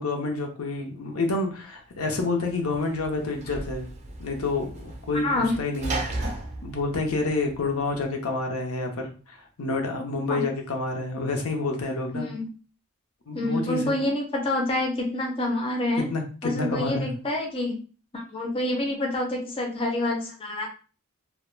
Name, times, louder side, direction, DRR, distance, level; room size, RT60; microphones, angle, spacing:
voice 1, 0.0-3.9 4.2-6.3 6.6-12.3 13.3-13.9 16.1-17.1, left 3 dB, 75° left, 3 dB, 0.6 m, -29 dB
Sliding door / Slam, 2.1-8.0, right 2 dB, 30° right, 0.4 m, -36 dB
voice 2, 5.2-5.6 10.3-10.5 12.1-12.5 13.3-16.1 16.4-17.8 18.1-20.7, left 1 dB, 25° left, 0 dB, 0.4 m, -27 dB
2.2 x 2.1 x 3.0 m, 0.37 s
head